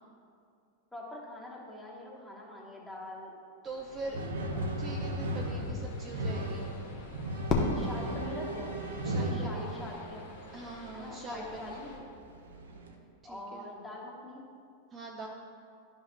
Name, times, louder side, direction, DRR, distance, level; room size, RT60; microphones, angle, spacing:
voice 1, 0.9-3.4 4.0-4.4 7.7-10.2 10.9-11.9 13.2-14.4, left 2 dB, 5° left, -4 dB, 1.4 m, -44 dB
sound 1, 3.6-12.0, left 2 dB, 65° left, 1.3 m, -48 dB
voice 2, 3.6-4.2 4.8-6.6 9.0-9.7 10.5-11.8 13.2-13.7 14.9-15.3, right 3 dB, 25° right, 0 dB, 0.6 m, -42 dB
sound 2, 4.1-10.1 11.4-11.5 12.3-12.9, right 1 dB, 65° right, 0.7 m, -36 dB
Fireworks, 7.5-9.7, left 3 dB, 30° left, 1.0 m, -33 dB
11.5 x 5.5 x 2.2 m, 2.3 s
figure-of-eight pair, 90°, 0 cm